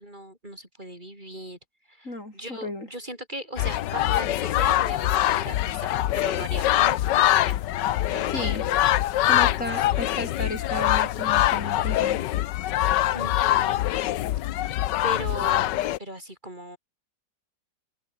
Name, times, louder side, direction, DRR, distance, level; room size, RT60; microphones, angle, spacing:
voice 1, 0.0-1.6 1.9-7.0 7.4-7.6 8.0-8.3 8.6-8.9 9.3-10.0 12.8-13.8 14.6-16.8, equal, 25° right, 5.9 m, -38 dB
voice 2, 2.0-2.9 8.3-8.6 9.2-12.2, left 1 dB, 40° left, 6.0 m, -34 dB
sound 1, 3.6-16.0, left 14 dB, 75° left, 1.3 m, -24 dB
open air
omnidirectional pair, 2.0 m